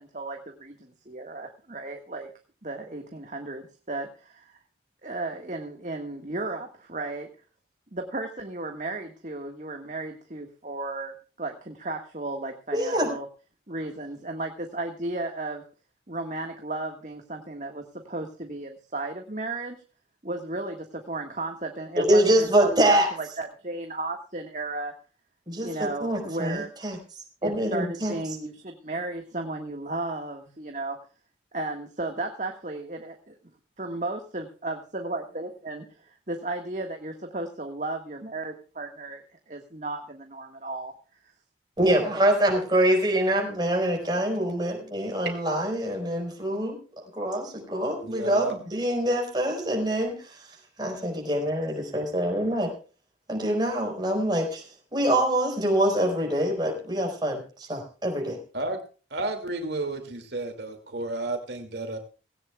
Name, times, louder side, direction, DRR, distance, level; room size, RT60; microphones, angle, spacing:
voice 1, 0.0-2.3 2.6-4.6 5.0-7.3 7.9-11.1 11.4-13.3 13.7-15.6 16.1-19.8 20.2-24.9 25.6-26.7 27.4-31.0 31.5-33.3 33.8-40.9, right 2 dB, 40° right, 3 dB, 1.6 m, -34 dB
voice 2, 12.7-13.1 22.0-23.1 25.5-27.0 27.4-28.1 41.8-52.7 53.3-54.6 54.9-58.4, right 1 dB, 25° right, 2 dB, 4.7 m, -25 dB
voice 3, 48.0-48.6 58.5-58.8 59.1-62.0, right 2 dB, 65° right, 5 dB, 2.4 m, -32 dB
18.0 x 17.5 x 2.3 m, 0.36 s
head